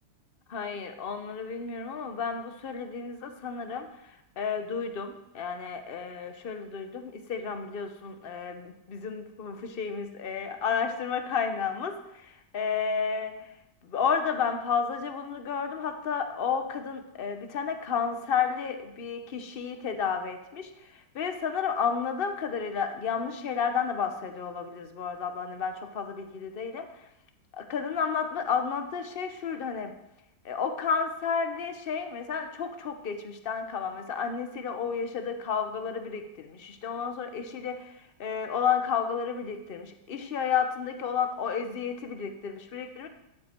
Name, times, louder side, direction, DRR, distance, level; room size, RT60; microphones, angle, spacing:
voice 1, 0.5-3.9 4.4-13.5 13.8-26.9 27.5-29.9 30.4-37.9 38.2-43.1, left 6 dB, 40° left, 7 dB, 0.9 m, -31 dB
12.5 x 7.5 x 4.5 m, 0.86 s
omnidirectional pair, 1.9 m